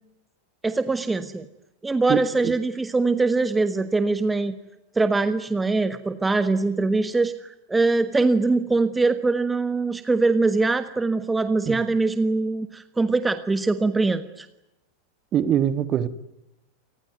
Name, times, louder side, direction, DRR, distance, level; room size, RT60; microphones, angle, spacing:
voice 1, 0.6-1.5 1.8-4.5 4.9-14.5, right 3 dB, 10° right, 11 dB, 1.3 m, -22 dB
voice 2, 2.1-2.5 11.7-11.8 15.3-16.1, right 9 dB, 30° right, 14 dB, 1.7 m, -23 dB
27.5 x 20.0 x 9.3 m, 0.89 s
figure-of-eight pair, 90°, 0 cm